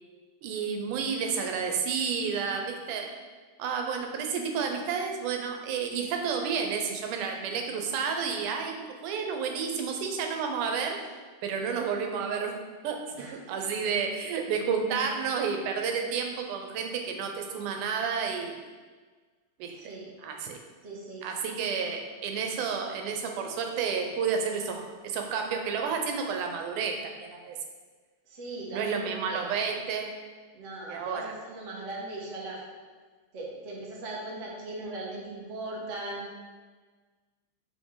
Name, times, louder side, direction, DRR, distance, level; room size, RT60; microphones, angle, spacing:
voice 1, 0.4-3.1 3.6-11.0 11.4-12.5 12.8-13.0 13.3-18.5 19.6-19.9 20.2-20.6 21.2-27.6 28.7-30.1 30.9-31.3, right 6 dB, 90° right, 3 dB, 2.3 m, -31 dB
voice 2, 19.7-20.1 20.8-21.2 28.3-29.5 30.5-32.6 33.3-36.3, right 2 dB, 55° right, -4 dB, 0.8 m, -39 dB
6.1 x 5.4 x 3.9 m, 1.4 s
omnidirectional pair, 3.5 m